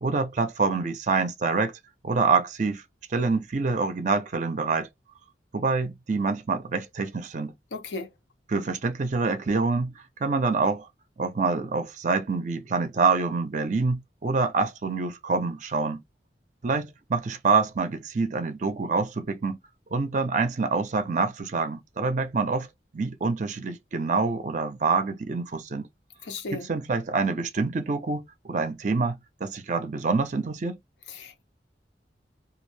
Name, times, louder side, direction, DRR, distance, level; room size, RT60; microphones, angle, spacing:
voice 1, 0.0-1.7 2.0-2.8 3.1-4.9 5.5-7.5 8.5-9.9 10.2-10.9 11.2-16.0 16.6-19.6 19.9-22.7 22.9-25.9 26.5-30.8, right 4 dB, 45° right, 0.4 m, -26 dB
voice 2, 7.7-8.1 26.2-26.7 31.1-31.4, left 3 dB, 90° left, 0.5 m, -35 dB
2.4 x 2.0 x 3.1 m
head